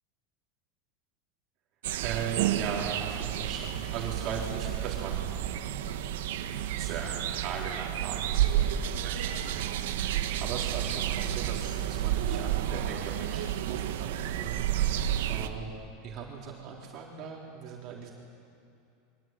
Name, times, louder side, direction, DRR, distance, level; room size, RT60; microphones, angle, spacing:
sound 1, 1.8-15.5, right 11 dB, 85° right, 1.5 m, -31 dB
voice 1, 2.0-5.9 6.8-15.7 16.0-18.1, right 6 dB, 40° right, -3 dB, 4.1 m, -39 dB
24.5 x 24.5 x 9.3 m, 2.6 s
supercardioid pair, 145°, 0 cm